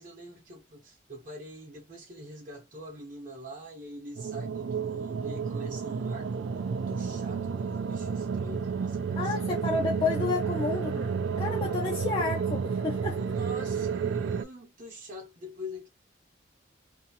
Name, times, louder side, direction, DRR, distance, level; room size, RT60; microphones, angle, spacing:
voice 1, 0.0-9.4 13.1-15.9, equal, 45° right, 0.8 m, -44 dB
sound 1, 4.2-14.4, right 6 dB, 70° right, 0.3 m, -31 dB
voice 2, 9.2-13.2, left 4 dB, 25° left, 0.4 m, -31 dB
2.7 x 2.4 x 2.7 m
head